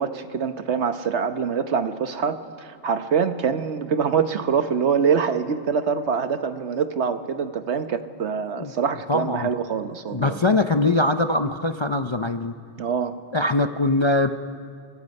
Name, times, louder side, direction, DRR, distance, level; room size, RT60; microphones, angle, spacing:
voice 1, 0.0-10.4 12.8-13.1, right 6 dB, 70° right, 9 dB, 1.3 m, -24 dB
voice 2, 9.1-9.5 10.1-12.5 13.3-14.3, left 2 dB, 35° left, 7 dB, 0.5 m, -22 dB
29.5 x 24.5 x 5.4 m, 2.3 s
omnidirectional pair, 1.2 m